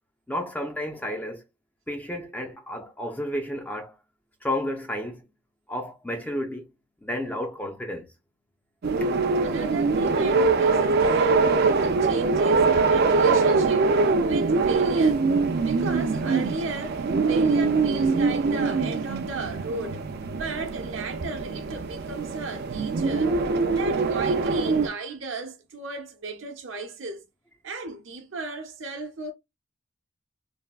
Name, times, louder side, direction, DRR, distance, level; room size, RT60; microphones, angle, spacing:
voice 1, 0.3-1.4 1.9-3.9 4.4-5.3 5.7-6.7 7.0-8.1, left 1 dB, 10° left, 0.5 m, -31 dB
sound 1, 8.8-24.9, right 4 dB, 50° right, 0.4 m, -23 dB
voice 2, 9.4-15.3 15.6-27.2 27.6-29.3, right 3 dB, 70° right, 0.8 m, -35 dB
3.4 x 2.1 x 2.3 m
head